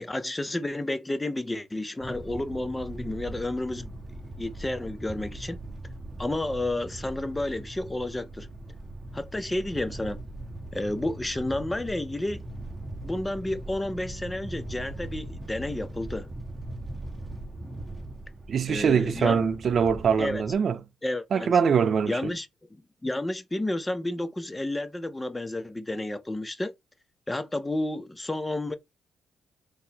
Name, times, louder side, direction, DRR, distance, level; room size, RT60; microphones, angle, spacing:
voice 1, 0.0-5.6 6.2-8.5 9.1-10.2 10.7-12.4 13.0-16.3 18.7-19.4 20.2-20.4 21.0-21.5 22.1-26.7 27.3-28.7, left 1 dB, 15° left, 0.5 m, -31 dB
sound 1, 2.0-20.5, right 1 dB, 20° right, 0.8 m, -40 dB
voice 2, 18.5-20.8 21.3-22.3, right 6 dB, 55° right, 0.4 m, -23 dB
3.8 x 2.8 x 2.8 m
cardioid pair, 90°, 0 cm